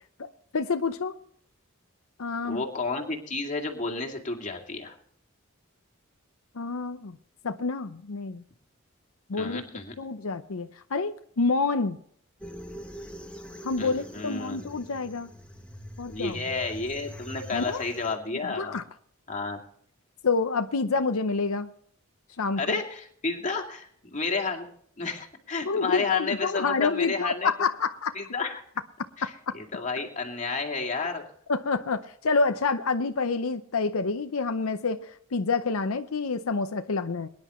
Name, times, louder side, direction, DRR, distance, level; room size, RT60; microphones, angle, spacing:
voice 1, 0.5-1.2 2.2-2.6 6.5-7.2 7.4-8.4 9.3-9.6 10.0-12.0 13.6-15.3 16.0-16.4 17.5-17.8 18.4-18.8 20.2-21.7 22.4-22.8 25.7-28.1 29.2-29.5 31.5-37.3, left 4 dB, 85° left, 8 dB, 0.7 m, -28 dB
voice 2, 2.5-4.9 9.3-10.0 13.8-14.8 16.0-18.8 19.3-19.6 22.6-24.7 25.0-27.5 28.2-28.6 29.2-31.2, left 3 dB, 35° left, 1 dB, 2.4 m, -31 dB
sound 1, 12.4-18.1, equal, 5° left, 1.1 m, -43 dB
22.5 x 10.5 x 3.1 m, 0.63 s
head